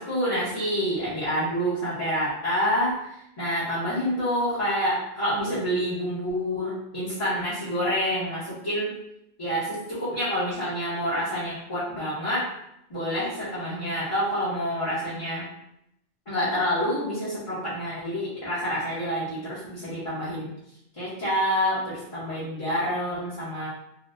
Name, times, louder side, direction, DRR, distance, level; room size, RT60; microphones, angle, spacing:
voice 1, 0.0-8.9 9.4-12.5 12.9-15.4 16.3-20.5 21.0-23.7, equal, 30° left, -11 dB, 0.9 m, -27 dB
4.2 x 2.1 x 2.5 m, 0.81 s
omnidirectional pair, 1.1 m